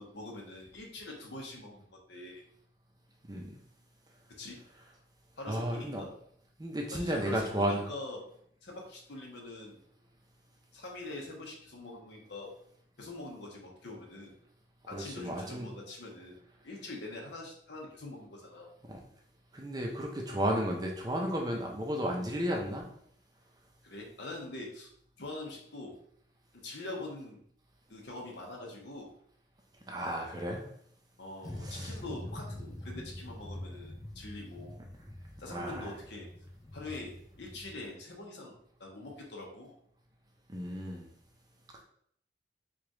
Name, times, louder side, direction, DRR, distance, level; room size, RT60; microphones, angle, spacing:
voice 1, 0.0-2.4 4.4-4.6 5.4-6.1 6.9-8.2 8.6-9.8 10.7-12.5 13.0-14.3 14.9-16.4 16.6-18.7 23.8-24.9 25.2-26.0 26.5-27.4 27.9-29.1 31.2-34.8 35.4-36.3 36.7-39.7, left 2 dB, 70° left, -1 dB, 1.0 m, -44 dB
voice 2, 5.5-6.0 6.6-7.8 14.9-15.7 18.9-19.0 19.5-22.8 29.9-30.6 31.6-31.9 35.5-35.9 40.5-41.1, equal, 20° right, 0 dB, 0.6 m, -33 dB
sound 1, 31.4-37.9, left 1 dB, 20° left, 0.4 m, -45 dB
4.9 x 2.4 x 3.0 m, 0.65 s
head